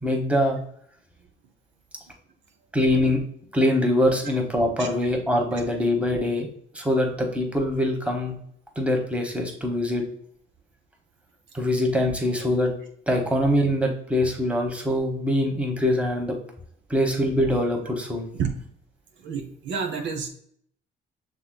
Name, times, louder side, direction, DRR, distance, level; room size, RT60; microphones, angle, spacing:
voice 1, 0.0-0.6 2.7-3.2 3.5-6.5 6.7-8.4 8.8-10.1 11.5-12.7 13.1-16.4 16.9-18.3, left 1 dB, 5° right, 2 dB, 1.1 m, -23 dB
voice 2, 19.2-20.3, right 6 dB, 70° right, 4 dB, 0.7 m, -29 dB
6.0 x 3.6 x 2.2 m, 0.65 s
cardioid pair, 90°, 20 cm